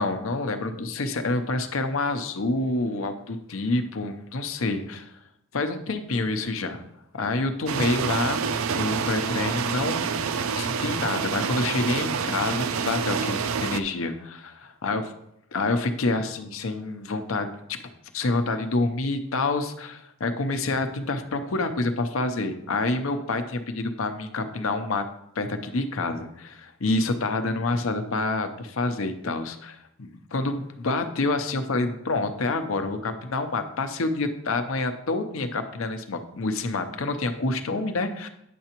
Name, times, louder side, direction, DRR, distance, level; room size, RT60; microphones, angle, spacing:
voice 1, 0.0-5.1 5.5-6.8 7.1-8.4 8.7-10.3 10.6-15.1 15.5-17.8 18.1-25.0 25.4-38.3, left 2 dB, 80° left, 8 dB, 0.7 m, -27 dB
sound 1, 7.6-13.8, right 6 dB, 80° right, 0.4 m, -27 dB
9.2 x 6.6 x 3.0 m, 0.78 s
head